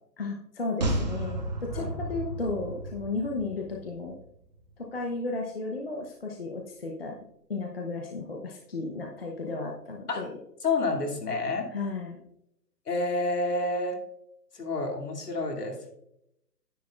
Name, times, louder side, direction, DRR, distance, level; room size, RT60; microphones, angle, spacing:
voice 1, 0.2-4.2 4.8-7.2 7.5-10.3 11.7-12.2, left 3 dB, 35° left, 1 dB, 0.9 m, -34 dB
sound 1, 0.8-4.2 4.5-4.6, right 1 dB, 25° right, 1.1 m, -33 dB
voice 2, 10.6-11.7 12.9-14.0 14.5-15.9, left 2 dB, 65° left, 2 dB, 2.7 m, -29 dB
10.0 x 9.5 x 2.4 m, 0.78 s
hypercardioid pair, 170°, 49 cm